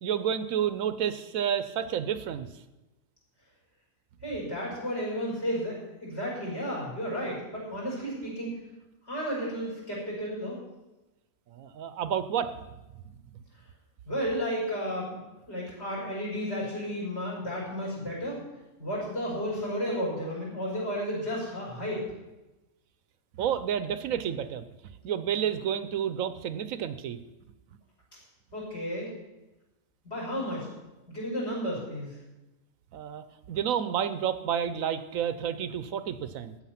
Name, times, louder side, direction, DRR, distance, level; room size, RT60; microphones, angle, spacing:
voice 1, 0.0-2.5 11.5-12.7 23.4-24.6 25.0-27.2 32.9-36.6, right 9 dB, 75° right, 12 dB, 1.1 m, -30 dB
voice 2, 4.2-8.5 9.1-10.6 14.1-15.1 15.5-18.4 18.8-22.0 28.5-29.1 30.0-30.7 31.1-32.2, equal, 50° left, -5 dB, 5.5 m, -32 dB
13.0 x 8.6 x 5.8 m, 1.0 s
omnidirectional pair, 1.4 m